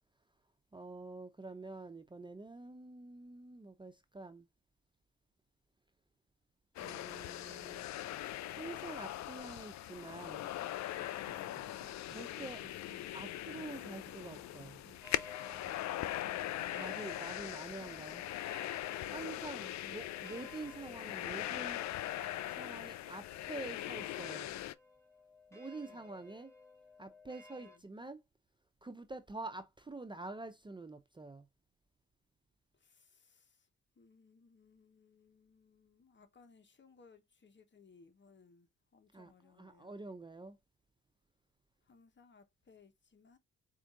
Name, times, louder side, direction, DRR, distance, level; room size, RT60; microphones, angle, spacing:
voice 1, 0.7-4.5 6.8-10.5 12.1-12.6 13.1-14.8 16.5-18.3 19.1-21.9 22.4-24.6 25.5-26.5 27.0-28.2 28.8-31.5 39.1-39.3 39.6-40.6, right 3 dB, 15° right, 0.5 m, -47 dB
sound 1, 6.8-24.7, left 14 dB, 70° left, 0.5 m, -41 dB
sound 2, 10.9-19.8, right 8 dB, 60° right, 0.7 m, -63 dB
sound 3, 15.0-27.8, left 3 dB, 10° left, 2.0 m, -56 dB
voice 2, 25.8-26.1 27.6-27.8 32.7-33.7 33.9-40.0 41.8-43.4, left 5 dB, 40° left, 1.1 m, -64 dB
4.4 x 2.5 x 3.7 m
supercardioid pair, 55°, 29 cm